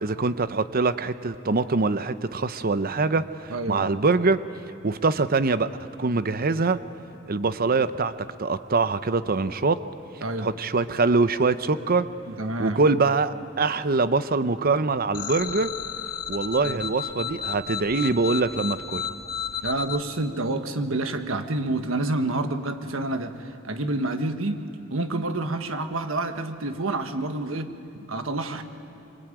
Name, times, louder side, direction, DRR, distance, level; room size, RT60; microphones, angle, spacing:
voice 1, 0.0-4.4 4.8-5.7 6.0-6.8 7.3-8.1 8.4-9.8 10.4-12.1 12.6-15.7 16.3-19.0, right 3 dB, 45° right, 13 dB, 0.8 m, -23 dB
voice 2, 3.5-3.9 10.2-10.5 12.3-12.8 16.6-16.8 19.0-19.2 19.6-24.6 24.9-28.6, right 2 dB, 75° right, 8 dB, 1.6 m, -28 dB
sound 1, 15.1-20.0, left 8 dB, 45° left, 1.9 m, -32 dB
24.5 x 24.0 x 9.1 m, 2.8 s
head